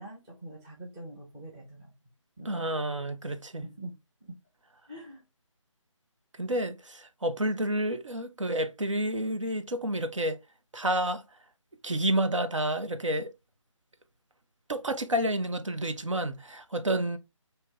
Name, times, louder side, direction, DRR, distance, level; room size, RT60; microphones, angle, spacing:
voice 1, 0.0-1.9 2.4-2.7 3.6-3.9 4.2-4.3 4.9-5.2, right 1 dB, 5° right, 0.6 m, -44 dB
voice 2, 2.4-3.6 6.4-10.4 10.7-11.2 11.8-13.3 14.7-17.2, right 1 dB, 70° right, 0.9 m, -29 dB
5.3 x 2.9 x 3.3 m
figure-of-eight pair, 155°, 17 cm